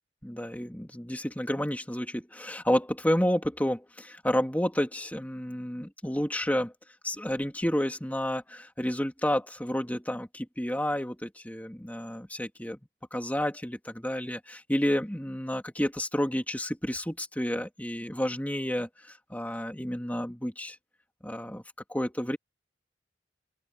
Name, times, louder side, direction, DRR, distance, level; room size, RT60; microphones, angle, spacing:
voice 1, 0.2-6.7 7.0-12.8 13.1-20.8 21.2-21.6 21.9-22.4, equal, 10° left, 2.7 m, -30 dB
open air
head